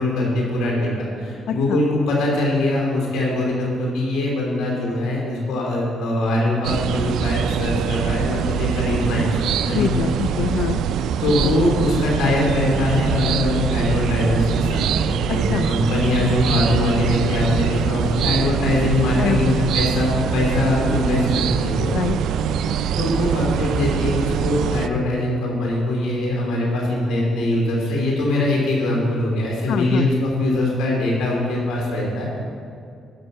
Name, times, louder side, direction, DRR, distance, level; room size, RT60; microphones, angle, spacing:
voice 1, 0.0-9.3 9.7-9.9 11.2-21.9 22.9-32.3, left 1 dB, 90° left, -2 dB, 2.9 m, -22 dB
voice 2, 1.5-1.8 9.7-10.8 11.4-11.5 15.3-15.7 19.2-19.6 21.9-22.2 29.7-30.1, left 8 dB, 75° left, 10 dB, 0.3 m, -25 dB
sound 1, 6.6-24.9, right 8 dB, 80° right, 0.3 m, -23 dB
13.5 x 5.4 x 5.5 m, 2.3 s
cardioid pair, 90°, 0 cm